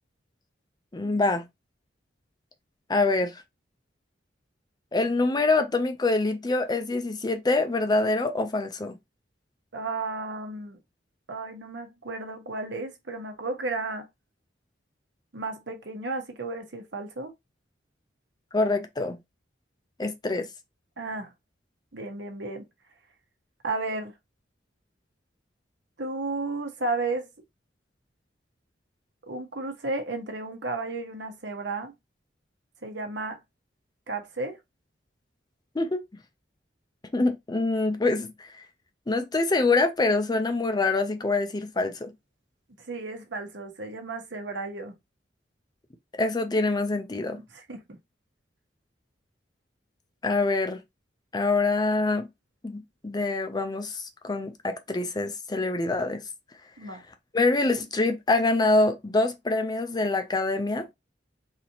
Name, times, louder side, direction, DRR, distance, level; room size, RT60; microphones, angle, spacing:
voice 1, 0.9-1.5 2.9-3.4 4.9-9.0 18.5-19.2 20.0-20.5 35.7-36.0 37.1-38.5 39.1-42.1 46.2-47.4 50.2-50.8 51.3-52.3 52.6-56.2 57.3-60.9, left 3 dB, 25° left, 0.5 m, -25 dB
voice 2, 9.7-10.8 11.3-14.1 15.3-17.3 21.0-21.3 21.9-22.6 23.6-24.1 26.0-27.3 29.2-31.9 32.8-33.4 34.1-34.6 42.9-44.9 47.5-47.8 56.8-57.0, right 3 dB, 70° right, 1.1 m, -33 dB
4.1 x 2.9 x 2.8 m
head